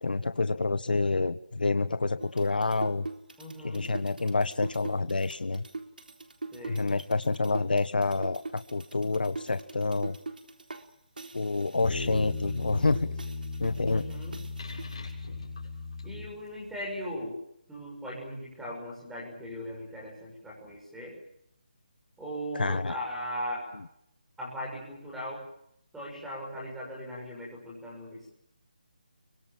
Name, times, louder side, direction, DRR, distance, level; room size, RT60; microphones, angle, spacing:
voice 1, 0.0-3.1 3.6-5.6 6.7-10.2 11.3-13.1 13.6-14.1 22.5-22.9, left 3 dB, 80° left, 11 dB, 1.4 m, -28 dB
sound 1, 2.2-10.9 11.2-15.0, right 3 dB, 75° right, 3.9 m, -43 dB
voice 2, 3.4-3.9 6.5-6.8 13.9-14.4 16.0-17.4 17.7-21.2 22.2-23.8 24.4-25.4 25.9-28.3, equal, ahead, -4 dB, 6.4 m, -38 dB
sound 2, 11.8-16.7, left 3 dB, 35° left, 7.0 m, -37 dB
26.5 x 24.0 x 7.5 m, 0.73 s
hypercardioid pair, 180°, 5 cm